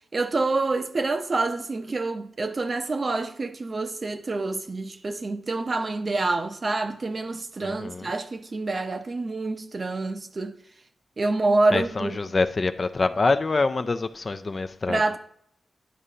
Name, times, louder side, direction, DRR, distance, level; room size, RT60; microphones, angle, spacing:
voice 1, 0.1-10.5 11.2-12.1 14.9-15.2, right 3 dB, 40° right, 0.6 m, -27 dB
voice 2, 7.6-8.1 11.7-15.0, left 3 dB, 35° left, 0.3 m, -25 dB
11.0 x 5.0 x 2.8 m
wide cardioid pair, 115°, 0 cm